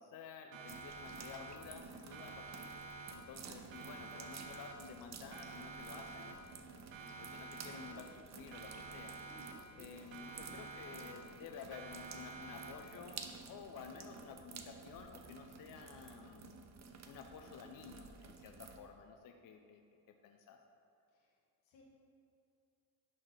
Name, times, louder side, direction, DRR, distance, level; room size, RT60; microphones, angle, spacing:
voice 1, 0.0-6.4 7.3-9.2 9.8-16.7 17.1-19.8 20.1-20.6, left 6 dB, 45° left, 4 dB, 0.5 m, -52 dB
Siren, 0.5-1.8 2.1-3.4 3.7-5.0 5.3-6.6 6.9-8.2 8.5-9.8 10.1-11.4 11.7-13.0, right 3 dB, 80° right, 0.8 m, -50 dB
sound 1, 0.6-10.8, equal, 5° left, 0.8 m, -69 dB
sound 2, 0.7-18.8, right 5 dB, 35° right, 0.6 m, -53 dB
voice 2, 10.1-10.4 21.1-21.8, left 3 dB, 80° left, -3 dB, 1.6 m, -69 dB
11.0 x 3.7 x 3.3 m, 2.6 s
supercardioid pair, 70°, 46 cm